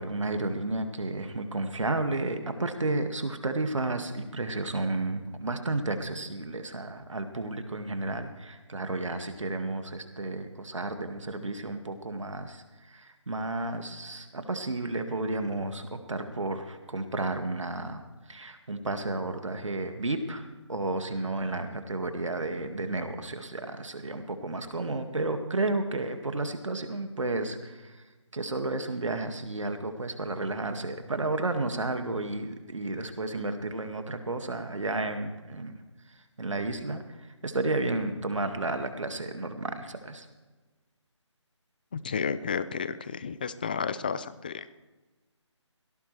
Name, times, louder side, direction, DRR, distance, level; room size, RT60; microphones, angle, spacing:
voice 1, 0.0-18.0 18.3-28.0 28.3-35.8 36.4-40.3, right 2 dB, 80° right, 6 dB, 2.0 m, -32 dB
voice 2, 41.9-44.7, left 6 dB, 20° left, 15 dB, 0.4 m, -32 dB
19.0 x 16.5 x 3.3 m, 1.2 s
figure-of-eight pair, 160°, 16 cm